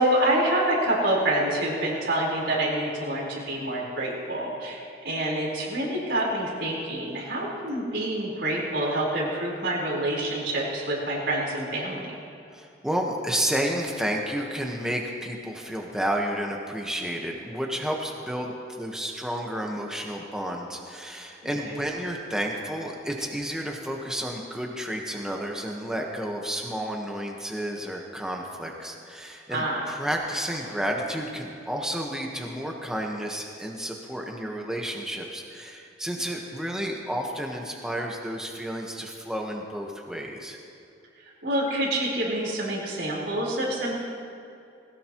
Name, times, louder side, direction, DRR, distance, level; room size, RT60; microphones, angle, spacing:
voice 1, 0.0-12.1 29.5-29.8 41.4-43.9, right 1 dB, 80° right, -4 dB, 4.5 m, -27 dB
voice 2, 12.5-40.6, equal, 5° right, 0 dB, 1.3 m, -31 dB
20.5 x 17.5 x 3.1 m, 2.6 s
head